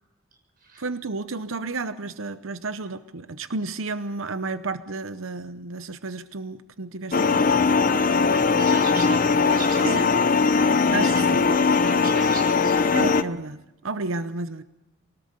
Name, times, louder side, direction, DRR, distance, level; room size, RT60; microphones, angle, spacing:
voice 1, 0.8-7.7 9.8-10.0 10.9-11.5 12.9-14.6, right 3 dB, 75° right, 12 dB, 0.8 m, -32 dB
sound 1, 7.1-13.2, left 4 dB, 40° left, 0.7 m, -20 dB
voice 2, 8.3-10.3 11.0-12.8, right 3 dB, 45° right, 2 dB, 7.3 m, -37 dB
24.5 x 18.5 x 6.8 m, 0.92 s
head